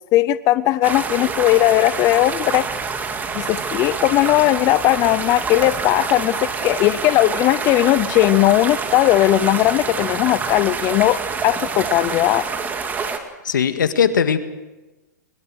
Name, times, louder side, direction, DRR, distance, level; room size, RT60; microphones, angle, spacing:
voice 1, 0.1-2.7 3.3-12.5, left 16 dB, 30° left, 16 dB, 0.6 m, -18 dB
sound 1, 0.8-13.2, right 5 dB, 15° right, 2.1 m, -27 dB
voice 2, 13.4-14.4, left 7 dB, 80° left, 10 dB, 1.8 m, -18 dB
21.5 x 21.0 x 6.4 m, 1.1 s
hypercardioid pair, 130°, 10 cm